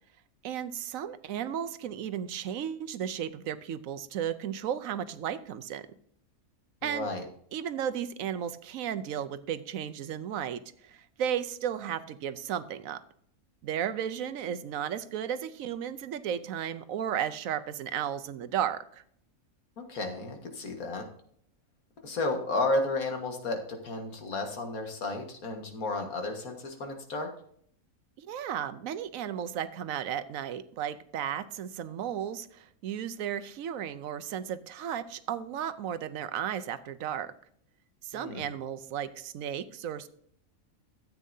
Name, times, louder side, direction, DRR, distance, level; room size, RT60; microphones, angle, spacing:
voice 1, 0.4-5.8 6.8-7.1 7.5-13.0 13.6-19.0 28.2-37.3 38.0-40.1, right 9 dB, 75° right, 12 dB, 1.0 m, -34 dB
voice 2, 6.8-7.2 19.8-21.0 22.0-27.3 38.1-38.4, left 2 dB, 85° left, 4 dB, 2.0 m, -32 dB
13.5 x 8.4 x 2.7 m, 0.64 s
omnidirectional pair, 1.5 m